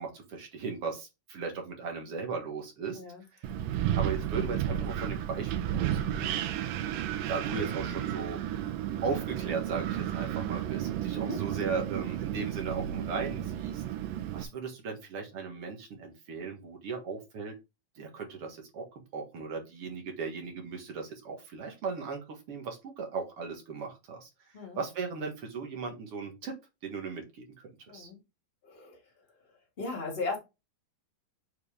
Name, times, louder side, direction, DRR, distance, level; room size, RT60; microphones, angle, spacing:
voice 1, 0.0-3.0 3.3-3.4 4.0-6.4 7.2-8.7 9.0-13.8 14.3-17.5 18.0-18.9 19.1-24.3 24.8-26.5 26.8-27.5 27.9-28.1, right 5 dB, 50° right, 2.1 m, -37 dB
Wind, 3.4-14.4, right 11 dB, 90° right, 2.5 m, -32 dB
voice 2, 27.9-28.2 28.6-29.0 29.8-30.4, left 3 dB, 20° left, 2.3 m, -37 dB
7.3 x 4.4 x 3.5 m
omnidirectional pair, 3.9 m